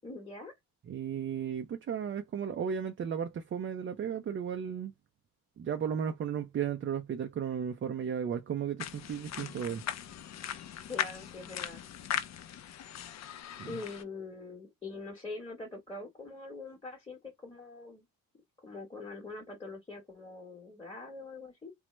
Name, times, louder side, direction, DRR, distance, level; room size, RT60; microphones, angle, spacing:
voice 1, 0.0-0.5 10.9-11.8 13.7-18.0 18.6-21.7, left 3 dB, 15° left, 1.1 m, -43 dB
voice 2, 0.9-4.9 5.6-9.8 13.6-13.8, right 8 dB, 35° right, 0.4 m, -34 dB
sound 1, 8.8-14.0, left 10 dB, 50° left, 0.4 m, -39 dB
3.0 x 2.0 x 3.1 m
cardioid pair, 110°, 35 cm